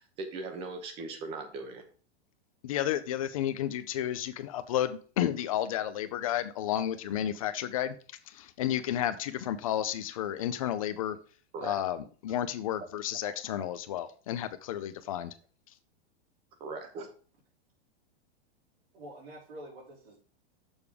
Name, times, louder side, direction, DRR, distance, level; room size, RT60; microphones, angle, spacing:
voice 1, 0.0-1.8 11.5-11.8 13.2-13.3 16.6-17.1, right 3 dB, 15° right, 6 dB, 0.8 m, -39 dB
voice 2, 2.6-7.9 8.3-11.2 11.6-15.3, left 11 dB, 35° left, 11 dB, 0.5 m, -32 dB
voice 3, 18.9-20.2, right 1 dB, 60° right, -7 dB, 3.9 m, -47 dB
7.0 x 6.4 x 3.5 m, 0.40 s
supercardioid pair, 175°, 33 cm